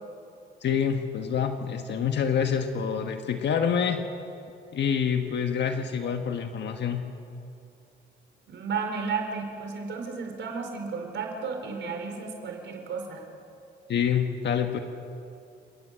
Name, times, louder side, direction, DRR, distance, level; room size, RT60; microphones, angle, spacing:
voice 1, 0.6-4.0 4.7-7.0 13.9-14.8, left 7 dB, 60° left, 5 dB, 1.5 m, -27 dB
voice 2, 8.5-13.2, right 5 dB, 70° right, 3 dB, 4.6 m, -33 dB
28.5 x 18.0 x 7.7 m, 2.6 s
cardioid pair, 90°, 20 cm